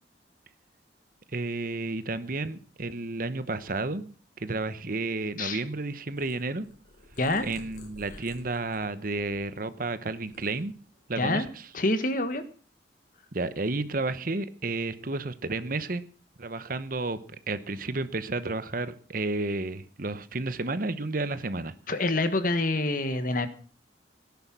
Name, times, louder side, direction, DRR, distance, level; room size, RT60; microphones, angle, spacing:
voice 1, 1.3-6.7 7.4-10.7 11.1-11.7 13.3-16.0 16.4-21.7, right 3 dB, 50° right, 13 dB, 1.0 m, -32 dB
Purr, 6.1-9.7 10.1-11.2, left 1 dB, 65° left, 4.6 m, -51 dB
voice 2, 11.2-11.5 11.7-12.4 21.9-23.5, left 2 dB, 50° left, 11 dB, 1.5 m, -26 dB
17.0 x 10.5 x 6.1 m, 0.42 s
head